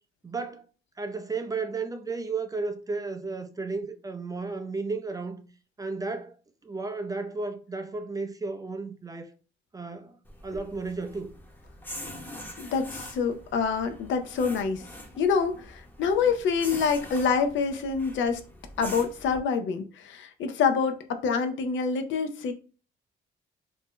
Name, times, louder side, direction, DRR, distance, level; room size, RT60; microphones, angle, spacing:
voice 1, 0.2-0.6 1.0-5.5 5.8-6.4 6.6-9.3 9.7-10.2 10.4-11.3, right 3 dB, 20° right, 0.4 m, -33 dB
sound 1, 10.2-19.4, left 1 dB, 10° left, 0.7 m, -44 dB
voice 2, 12.6-14.9 15.2-18.4 18.8-22.5, left 5 dB, 70° left, 0.5 m, -26 dB
2.6 x 2.1 x 3.6 m
cardioid pair, 90°, 20 cm